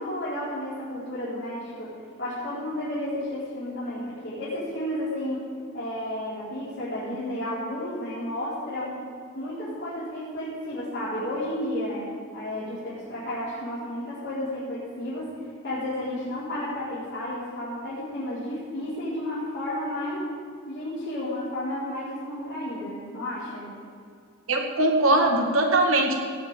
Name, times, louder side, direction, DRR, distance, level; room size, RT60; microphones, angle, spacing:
voice 1, 0.0-1.9 2.2-5.4 5.7-9.0 9.3-15.3 15.6-20.3 20.7-23.7, left 1 dB, 55° left, -11 dB, 4.3 m, -32 dB
voice 2, 24.5-26.2, right 2 dB, 75° right, 2 dB, 2.0 m, -21 dB
18.0 x 6.3 x 8.1 m, 2.3 s
head